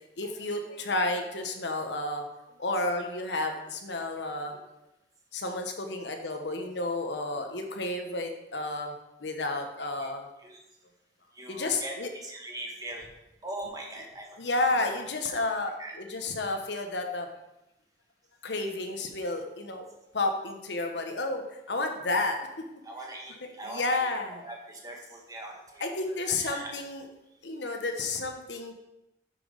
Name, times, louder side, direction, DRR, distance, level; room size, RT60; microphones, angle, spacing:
voice 1, 0.2-2.3 2.6-4.6 5.3-8.9 9.2-10.3 11.5-12.1 14.4-17.3 18.4-19.9 20.1-22.4 23.4-24.4 25.8-27.0 27.4-28.7, left 2 dB, 80° left, 4 dB, 1.2 m, -31 dB
voice 2, 11.3-13.1 13.4-14.4 15.3-15.4 15.8-15.9 22.8-25.8 26.2-26.7, right 1 dB, 20° right, 0 dB, 1.4 m, -41 dB
8.7 x 6.0 x 5.1 m, 0.91 s
head